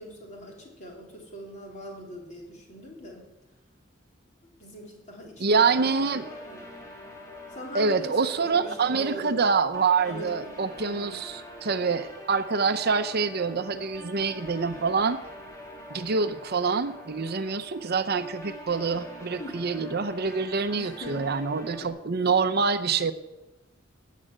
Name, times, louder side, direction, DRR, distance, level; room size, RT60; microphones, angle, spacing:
voice 1, 0.0-3.2 4.6-5.9 6.1-6.7 7.5-9.5 10.0-10.5 10.8-11.2 18.9-19.1 19.4-19.6 20.8-21.3 21.8-21.9, equal, 40° left, 0 dB, 3.8 m, -42 dB
voice 2, 5.4-6.3 7.7-15.2 15.9-23.1, right 5 dB, 55° right, 11 dB, 0.8 m, -26 dB
sound 1, 5.5-21.9, equal, 15° left, 2.6 m, -44 dB
13.0 x 8.5 x 8.9 m, 1.0 s
head